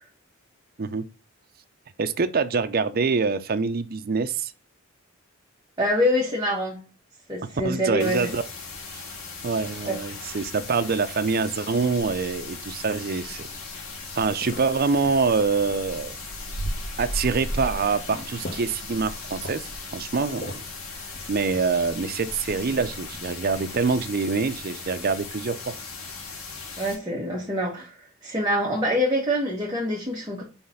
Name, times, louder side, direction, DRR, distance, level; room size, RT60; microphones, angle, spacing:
voice 1, 2.0-4.5 7.6-8.4 9.4-13.5 14.2-16.2 17.0-19.6 19.9-20.6 21.3-25.8, right 4 dB, 45° right, 0.5 m, -25 dB
voice 2, 5.8-6.8 7.3-8.3 9.8-10.0 26.8-30.4, equal, 20° right, 1.3 m, -25 dB
sound 1, 8.0-26.9, left 4 dB, 85° left, 1.8 m, -38 dB
sound 2, 12.3-24.1, equal, 45° left, 1.2 m, -38 dB
5.7 x 3.2 x 5.6 m
head